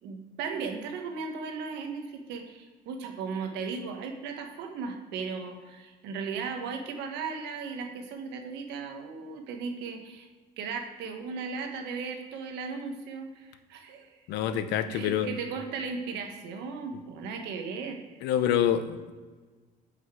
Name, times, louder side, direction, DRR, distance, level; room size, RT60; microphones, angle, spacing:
voice 1, 0.0-10.3 10.6-14.2 14.9-18.0, right 5 dB, 90° right, 4 dB, 1.4 m, -36 dB
voice 2, 14.3-15.3 18.2-19.1, left 10 dB, 90° left, 11 dB, 0.7 m, -26 dB
9.6 x 5.6 x 4.8 m, 1.4 s
cardioid pair, 110°, 17 cm